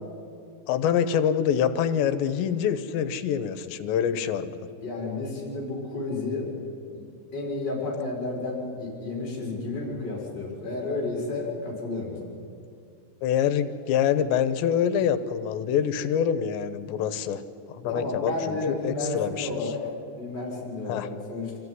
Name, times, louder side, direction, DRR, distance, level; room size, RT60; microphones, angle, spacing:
voice 1, 0.7-4.7 13.2-17.4 17.7-19.6 20.9-21.1, left 8 dB, 90° left, 11 dB, 3.1 m, -25 dB
voice 2, 4.8-6.5 6.9-7.0 7.3-12.4 17.9-19.9 20.2-21.6, left 2 dB, 25° left, -3 dB, 5.1 m, -31 dB
26.0 x 14.5 x 9.6 m, 2.5 s
omnidirectional pair, 5.0 m